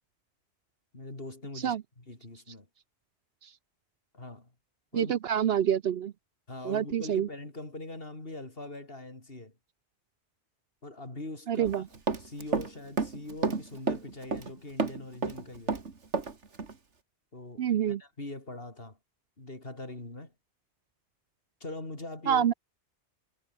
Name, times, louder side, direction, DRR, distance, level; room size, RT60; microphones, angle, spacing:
voice 1, 0.9-2.7 4.1-4.5 4.9-5.1 6.5-9.6 10.8-11.8 12.2-15.8 17.3-17.7 18.0-19.0 19.4-20.3 21.6-22.5, left 2 dB, 55° left, 4.5 m, -42 dB
voice 2, 4.9-6.1 6.6-7.3 11.5-11.8 17.6-18.0 22.3-22.5, right 9 dB, 65° right, 0.8 m, -27 dB
Run, 11.6-12.7 13.0-14.5 14.8-16.3 16.6-16.7, right 4 dB, 80° right, 2.5 m, -30 dB
omnidirectional pair, 1.2 m